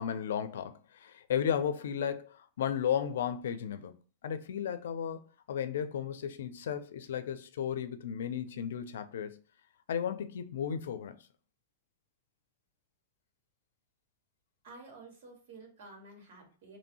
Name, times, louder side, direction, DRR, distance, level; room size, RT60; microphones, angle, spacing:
voice 1, 0.0-3.9 4.2-5.2 5.5-9.4 9.9-11.2, left 8 dB, 85° left, 0.5 m, -34 dB
voice 2, 14.6-16.8, right 3 dB, 65° right, 1.8 m, -51 dB
3.1 x 2.6 x 4.1 m
supercardioid pair, 155°, 0 cm